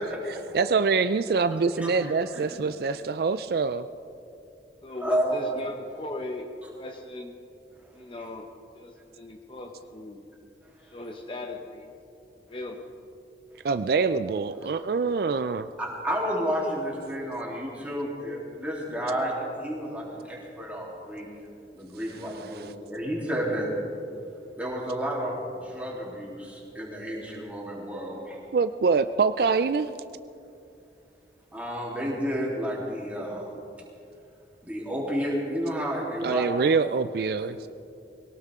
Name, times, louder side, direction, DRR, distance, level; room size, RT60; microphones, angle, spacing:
voice 1, 0.0-0.4 1.7-1.9 2.3-2.4 5.0-5.6 15.8-21.3 21.7-23.7 24.6-28.4 31.5-33.5 34.6-36.7, equal, 10° right, -5 dB, 3.3 m, -31 dB
voice 2, 0.5-3.9 13.6-15.7 22.3-22.7 28.5-29.9 36.2-37.7, right 4 dB, 60° right, 11 dB, 0.4 m, -25 dB
voice 3, 4.8-7.4 7.9-8.5 8.7-10.2 10.8-11.9 12.5-12.8, left 2 dB, 30° left, 3 dB, 0.9 m, -38 dB
22.0 x 18.0 x 3.7 m, 2.7 s
head